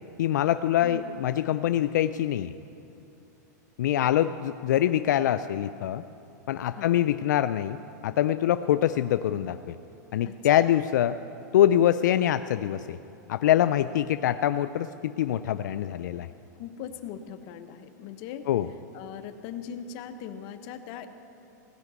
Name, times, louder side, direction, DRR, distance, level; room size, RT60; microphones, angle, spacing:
voice 1, 0.2-2.5 3.8-6.0 6.5-7.8 8.0-9.8 10.1-11.2 11.5-13.0 13.3-16.3 18.5-18.7, left 11 dB, 80° left, 12 dB, 0.4 m, -24 dB
voice 2, 16.6-18.5 18.9-21.1, left 8 dB, 45° left, 9 dB, 0.9 m, -40 dB
17.0 x 5.8 x 9.4 m, 2.8 s
supercardioid pair, 140°, 10 cm